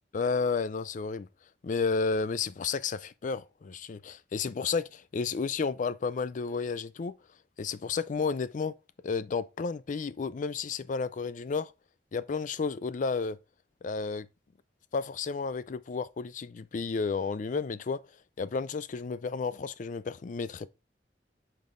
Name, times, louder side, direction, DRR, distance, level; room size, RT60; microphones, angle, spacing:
voice 1, 0.1-1.3 1.6-7.1 7.6-8.8 9.0-11.7 12.1-13.4 13.8-14.3 14.9-18.0 18.4-20.7, left 5 dB, 45° left, 0.4 m, -32 dB
9.3 x 5.3 x 2.5 m
head